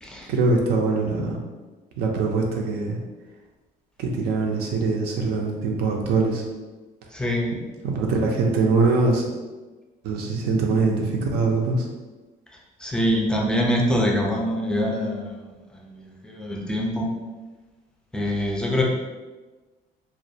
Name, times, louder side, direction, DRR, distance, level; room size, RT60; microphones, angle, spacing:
voice 1, 0.3-1.4 2.0-3.0 4.0-6.4 7.8-9.3 10.0-11.8, right 3 dB, 75° right, 1 dB, 0.5 m, -22 dB
voice 2, 7.1-7.6 12.8-17.1 18.1-18.8, equal, 5° left, -1 dB, 0.4 m, -25 dB
2.3 x 2.1 x 2.6 m, 1.2 s
cardioid pair, 110°, 17 cm